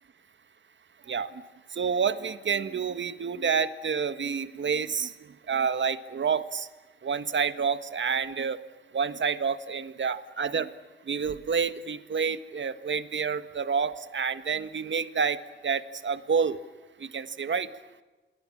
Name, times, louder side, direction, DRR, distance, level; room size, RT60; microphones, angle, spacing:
voice 1, 1.7-5.1 5.5-6.7 7.0-8.6 8.9-10.7 11.1-16.6 17.0-17.7, right 6 dB, 65° right, 12 dB, 1.6 m, -28 dB
27.5 x 23.0 x 8.7 m, 1.2 s
wide cardioid pair, 90°, 21 cm